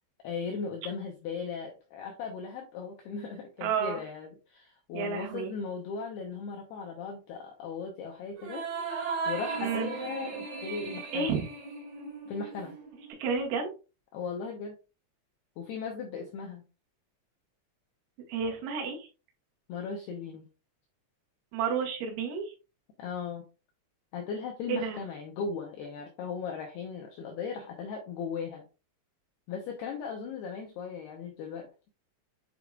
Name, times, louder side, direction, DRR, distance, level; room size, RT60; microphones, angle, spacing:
voice 1, 0.2-8.7 9.3-11.3 12.3-12.8 14.1-14.7 15.6-16.6 19.7-20.5 23.0-23.4 24.1-28.7 29.5-31.7, left 5 dB, 80° left, 2 dB, 2.3 m, -37 dB
voice 2, 3.6-4.0 4.9-5.5 9.6-9.9 11.1-11.4 13.2-13.7 18.3-19.1 21.5-22.5 24.7-25.0, right 6 dB, 80° right, 0 dB, 4.3 m, -30 dB
sound 1, 8.4-13.1, right 4 dB, 60° right, 2.5 m, -37 dB
8.9 x 4.7 x 2.4 m, 0.31 s
omnidirectional pair, 5.9 m